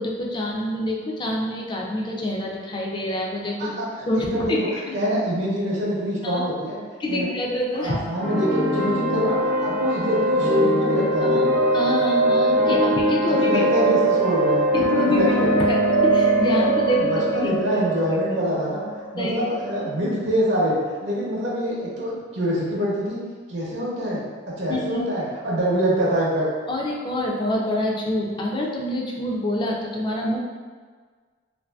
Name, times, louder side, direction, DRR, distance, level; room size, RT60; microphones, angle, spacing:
voice 1, 0.0-3.8 4.1-4.6 4.9-5.0 6.2-6.4 7.0-8.0 11.2-13.7 14.7-17.5 19.2-19.4 24.7-25.0 26.7-30.4, left 1 dB, 25° left, -2 dB, 0.3 m, -26 dB
voice 2, 4.1-4.7 4.9-6.8 7.1-7.3 7.7-11.6 13.3-14.7 15.0-15.5 17.0-18.8 19.1-23.2 23.5-24.2 24.5-26.5, equal, 70° right, -5 dB, 0.6 m, -25 dB
sound 1, 8.2-19.8, right 1 dB, 85° left, 1.0 m, -22 dB
2.6 x 2.6 x 2.2 m, 1.5 s
head